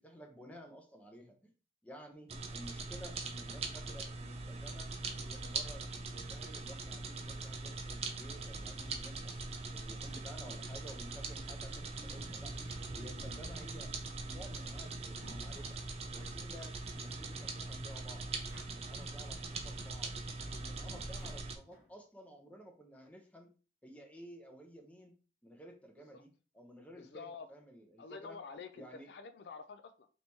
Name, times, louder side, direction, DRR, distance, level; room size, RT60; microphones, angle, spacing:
voice 1, 0.0-1.5 1.8-4.9 5.2-12.5 12.9-13.9 14.2-15.8 16.1-18.3 18.7-20.1 20.5-23.5 23.8-25.1 25.4-26.3 26.5-28.4 28.8-29.1, equal, 10° left, 3 dB, 0.7 m, -53 dB
sound 1, 2.3-21.6, right 3 dB, 35° right, 0.6 m, -42 dB
sound 2, 12.4-13.3 14.6-16.4 18.2-19.1 19.3-19.4 20.9-22.0, right 1 dB, 85° left, 1.6 m, -55 dB
voice 2, 27.0-27.5 28.0-30.1, left 5 dB, 60° left, 8 dB, 0.4 m, -48 dB
3.4 x 3.0 x 4.1 m, 0.37 s
head